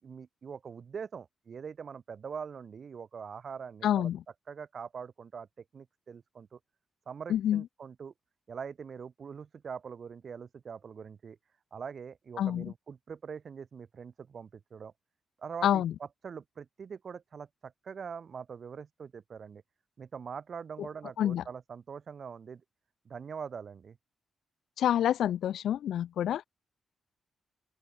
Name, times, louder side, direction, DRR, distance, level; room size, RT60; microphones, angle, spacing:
voice 1, 0.0-4.1 4.5-5.5 5.7-6.6 7.1-8.1 8.5-11.4 11.7-14.9 15.4-19.6 20.0-22.6 23.0-24.0, right 6 dB, 45° right, 6.8 m, -43 dB
voice 2, 3.8-4.2 7.3-7.6 12.4-12.7 15.6-15.9 21.2-21.4 24.8-26.4, left 10 dB, 80° left, 0.9 m, -27 dB
open air
cardioid pair, 135°, 0 cm